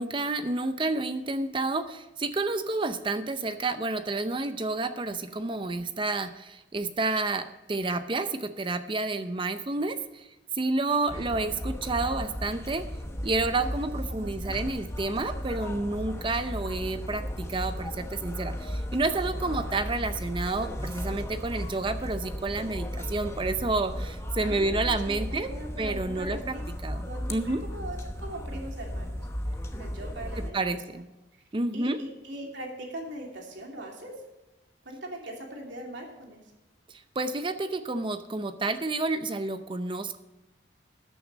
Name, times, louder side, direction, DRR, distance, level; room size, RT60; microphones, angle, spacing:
voice 1, 0.0-10.3 10.5-12.9 13.2-25.5 25.8-26.5 26.8-27.6 30.4-31.1 31.5-32.0 36.9-40.2, right 3 dB, 25° right, 10 dB, 0.6 m, -30 dB
sound 1, 11.1-30.5, equal, 15° left, 1.0 m, -35 dB
voice 2, 13.6-14.5 24.4-26.6 27.0-29.2 29.5-30.6 31.7-34.1 34.8-36.4, right 1 dB, 75° right, 0 dB, 2.9 m, -41 dB
13.5 x 9.6 x 4.1 m, 1.0 s
head